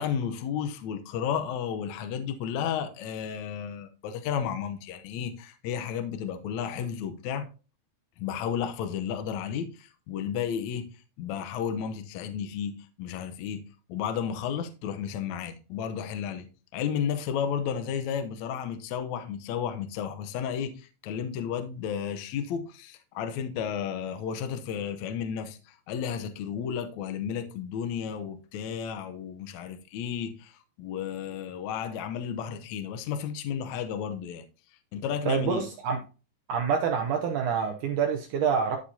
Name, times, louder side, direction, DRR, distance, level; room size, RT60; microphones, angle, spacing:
voice 1, 0.0-7.5 8.2-13.6 13.9-16.5 16.7-34.4 34.9-35.7, left 8 dB, 80° left, 1.6 m, -33 dB
voice 2, 35.3-36.0 36.5-38.8, right 7 dB, 75° right, 1.9 m, -27 dB
13.0 x 5.0 x 2.7 m
omnidirectional pair, 4.5 m